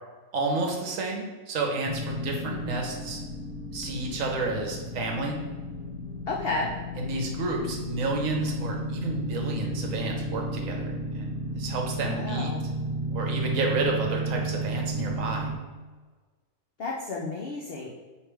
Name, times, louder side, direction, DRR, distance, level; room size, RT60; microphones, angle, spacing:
voice 1, 0.3-3.2 3.7-5.4 7.0-12.5 13.1-15.5, right 3 dB, 65° right, 1 dB, 1.0 m, -30 dB
sound 1, 1.8-15.6, right 1 dB, 40° right, 0.8 m, -33 dB
voice 2, 2.2-2.9 6.3-6.7 12.1-12.6 16.8-17.9, left 3 dB, 75° left, -2 dB, 0.5 m, -32 dB
3.2 x 3.2 x 4.5 m, 1.4 s
omnidirectional pair, 1.6 m